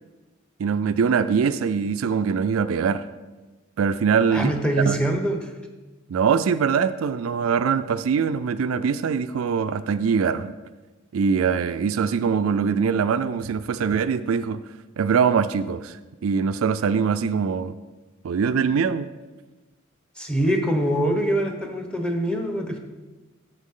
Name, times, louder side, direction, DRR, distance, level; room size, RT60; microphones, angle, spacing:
voice 1, 0.6-3.1 3.8-4.5 4.9-5.0 6.1-10.5 11.1-14.6 15.0-17.7 18.2-19.1, right 6 dB, 90° right, 13 dB, 0.4 m, -23 dB
voice 2, 4.3-5.5 20.2-22.8, right 1 dB, 5° left, 3 dB, 1.0 m, -24 dB
10.0 x 7.2 x 3.7 m, 1.2 s
head